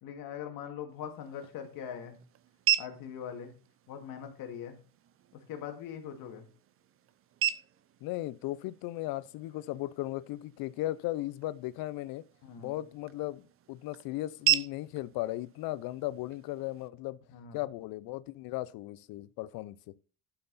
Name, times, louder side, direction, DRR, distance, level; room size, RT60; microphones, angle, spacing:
voice 1, 0.0-2.2 2.8-3.5 3.9-4.8 5.3-6.5 12.4-12.7 17.3-17.6, left 8 dB, 70° left, 2.2 m, -42 dB
sound 1, 0.9-16.9, right 11 dB, 40° right, 0.6 m, -38 dB
voice 2, 8.0-12.2 12.6-17.2 17.5-19.8, left 16 dB, 90° left, 0.6 m, -36 dB
11.5 x 5.9 x 4.1 m
cardioid pair, 155°, 35 cm